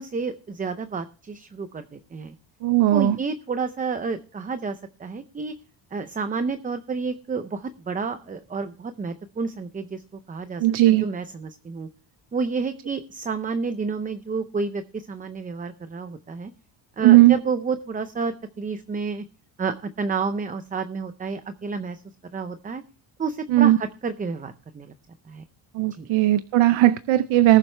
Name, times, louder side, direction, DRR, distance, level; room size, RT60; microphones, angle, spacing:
voice 1, 0.0-2.4 2.9-5.5 5.9-10.0 10.3-11.9 12.3-16.5 17.0-19.2 19.6-22.0 22.3-22.8 23.2-24.9 25.3-25.4 25.9-26.1, right 4 dB, 20° right, 0.5 m, -30 dB
voice 2, 2.6-3.2 10.6-11.0 17.0-17.3 23.5-23.8 25.8-27.6, right 15 dB, 90° right, 0.7 m, -17 dB
19.0 x 7.4 x 3.3 m
cardioid pair, 155°, 46 cm